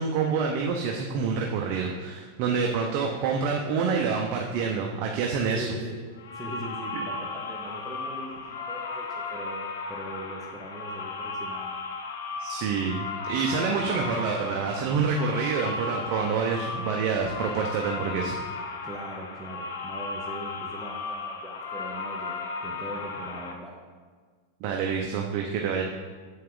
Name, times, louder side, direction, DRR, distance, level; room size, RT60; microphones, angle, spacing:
voice 1, 0.0-5.7 6.9-7.0 12.4-18.3 24.6-25.8, right 5 dB, 50° right, 1 dB, 0.7 m, -27 dB
voice 2, 5.5-6.0 6.3-11.7 13.7-14.2 18.8-23.8, right 1 dB, 10° right, -4 dB, 0.8 m, -40 dB
sound 1, 6.2-23.5, left 4 dB, 85° left, 0.8 m, -35 dB
7.1 x 5.4 x 3.8 m, 1.5 s
supercardioid pair, 135°, 0 cm